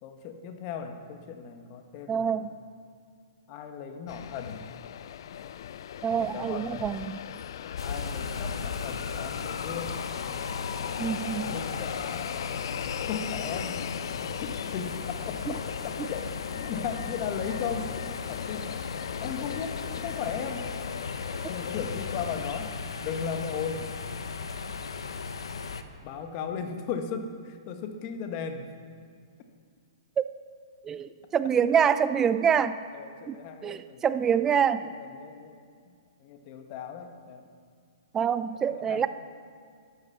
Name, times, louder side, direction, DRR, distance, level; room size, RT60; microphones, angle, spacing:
voice 1, 0.0-2.5 3.5-4.6 5.4-5.5 6.2-7.0 7.8-10.0 11.2-12.3 13.0-13.8 14.2-17.9 18.3-18.8 19.2-20.7 21.5-22.7 23.0-23.9 26.0-28.7 32.4-32.6 32.9-34.0 34.4-35.9 36.2-37.5 38.7-39.1, left 6 dB, 35° left, 6 dB, 1.5 m, -37 dB
voice 2, 2.1-2.5 6.0-7.1 11.0-11.6 15.5-15.6 30.2-30.3 30.8-32.8 33.3-33.4 33.6-34.8 38.1-39.1, right 7 dB, 15° right, 13 dB, 0.5 m, -26 dB
sound 1, 4.1-22.7, left 10 dB, 60° left, 0.5 m, -38 dB
sound 2, 7.8-25.8, left 5 dB, 80° left, 1.0 m, -36 dB
13.0 x 11.5 x 7.0 m, 2.2 s
hypercardioid pair, 140°, 3 cm